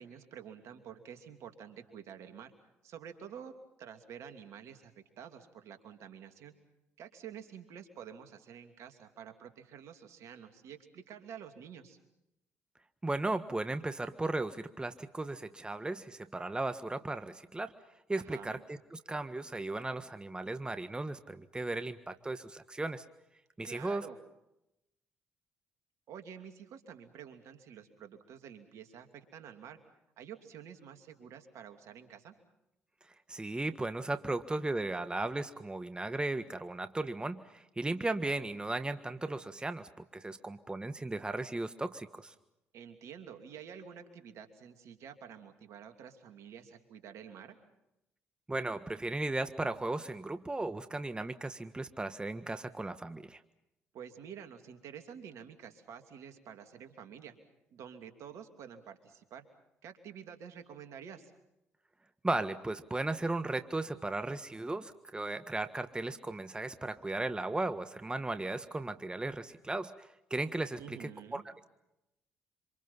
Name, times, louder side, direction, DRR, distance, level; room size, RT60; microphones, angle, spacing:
voice 1, 0.0-2.5 2.8-3.5 3.8-6.5 7.0-12.0 18.1-18.6 23.6-24.2 26.1-29.8 30.2-32.3 42.7-47.6 53.9-57.3 57.7-59.4 59.8-61.3 70.8-71.4, right 8 dB, 70° right, 7 dB, 2.9 m, -49 dB
voice 2, 13.0-17.7 18.1-23.0 23.6-24.1 33.3-42.3 48.5-53.4 62.2-71.6, right 2 dB, 15° right, 10 dB, 1.5 m, -36 dB
26.5 x 26.5 x 5.7 m, 0.88 s
hypercardioid pair, 55°, 5 cm